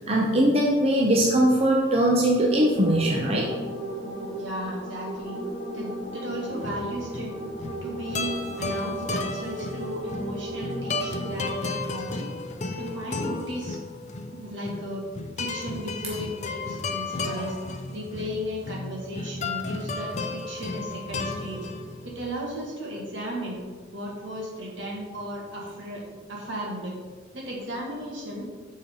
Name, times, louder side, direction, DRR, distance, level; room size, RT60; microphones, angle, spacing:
voice 1, 0.1-3.5, right 1 dB, 30° right, -2 dB, 0.8 m, -21 dB
sound 1, 2.2-11.5, right 1 dB, 15° right, 2.2 m, -36 dB
voice 2, 4.3-5.4 5.7-7.5 7.8-8.3 8.6-12.3 12.7-13.8 14.3-15.1 15.4-17.5 17.9-21.7 22.0-23.6 23.9-27.0 27.3-28.5, equal, 70° right, -3 dB, 2.2 m, -35 dB
sound 2, 6.5-22.1, left 3 dB, 40° left, 0.6 m, -33 dB
9.3 x 4.5 x 3.9 m, 1.4 s
head